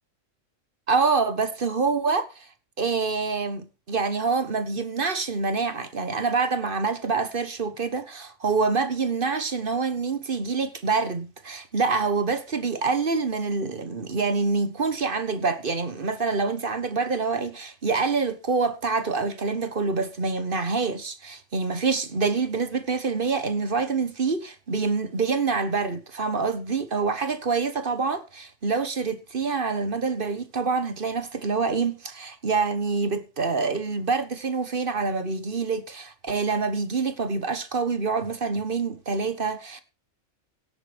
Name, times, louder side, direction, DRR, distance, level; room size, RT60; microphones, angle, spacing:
voice 1, 0.9-2.5 2.8-39.8, right 4 dB, 45° right, 1.5 m, -26 dB
17.0 x 9.5 x 3.5 m
omnidirectional pair, 1.3 m